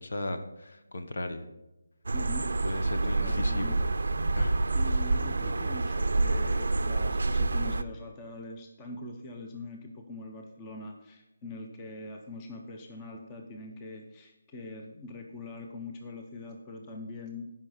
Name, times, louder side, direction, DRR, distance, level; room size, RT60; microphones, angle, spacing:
voice 1, 0.0-1.5 2.6-3.8 4.4-4.6, left 2 dB, 65° left, 8 dB, 1.3 m, -36 dB
voice 2, 2.1-3.9 4.7-17.5, left 2 dB, 15° left, 2 dB, 0.7 m, -43 dB
sound 1, 2.1-7.8, right 2 dB, 75° right, 0.6 m, -27 dB
14.5 x 5.5 x 5.0 m, 1.0 s
figure-of-eight pair, 175°, 0 cm